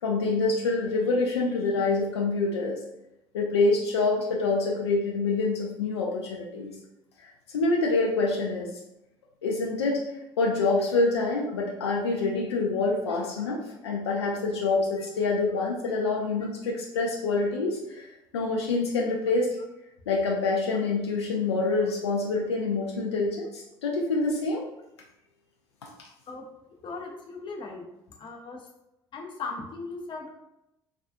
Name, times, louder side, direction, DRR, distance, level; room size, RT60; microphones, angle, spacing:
voice 1, 0.0-2.8 3.3-6.7 7.2-8.7 9.4-10.0 10.4-18.1 18.3-19.5 20.1-24.6 25.8-25.9, left 3 dB, 80° left, -1 dB, 0.4 m, -26 dB
voice 2, 26.8-27.8 28.2-28.6 29.1-30.3, left 3 dB, 35° left, 1 dB, 0.6 m, -38 dB
2.3 x 2.3 x 2.5 m, 0.89 s
figure-of-eight pair, 55°, 14 cm